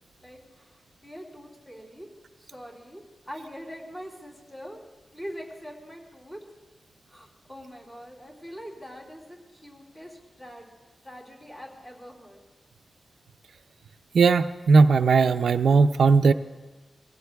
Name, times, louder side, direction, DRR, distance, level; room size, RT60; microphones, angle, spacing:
voice 1, 0.2-2.1 2.4-4.8 5.1-6.4 7.1-10.7 11.0-12.4, equal, 25° left, -3 dB, 3.2 m, -43 dB
voice 2, 14.1-16.3, right 4 dB, 85° right, 10 dB, 0.4 m, -18 dB
19.5 x 16.0 x 2.3 m, 1.2 s
wide cardioid pair, 130°, 0 cm